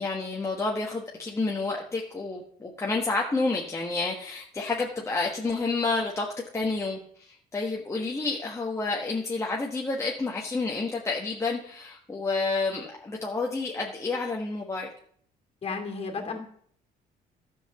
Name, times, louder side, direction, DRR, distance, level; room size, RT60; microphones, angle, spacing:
voice 1, 0.0-6.3 6.5-14.9, left 3 dB, 15° left, -1 dB, 1.3 m, -29 dB
voice 2, 15.6-16.4, left 4 dB, 35° left, 3 dB, 2.6 m, -33 dB
12.0 x 5.7 x 6.9 m, 0.63 s
cardioid pair, 110°, 17 cm